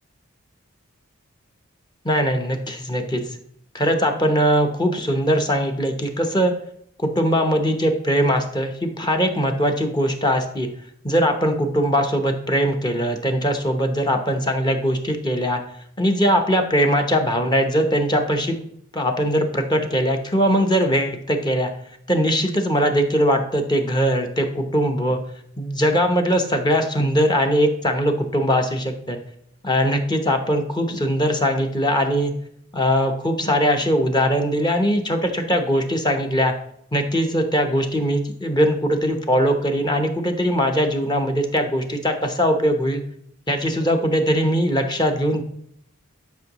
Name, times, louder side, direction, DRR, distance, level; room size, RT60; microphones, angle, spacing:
voice 1, 2.0-3.2 3.7-6.5 7.0-10.7 11.0-15.6 16.0-18.6 18.9-21.7 22.1-25.2 25.6-29.2 29.6-32.3 32.7-36.5 36.9-43.0 43.5-45.4, equal, 20° left, 4 dB, 0.8 m, -21 dB
11.5 x 5.4 x 3.0 m, 0.70 s
head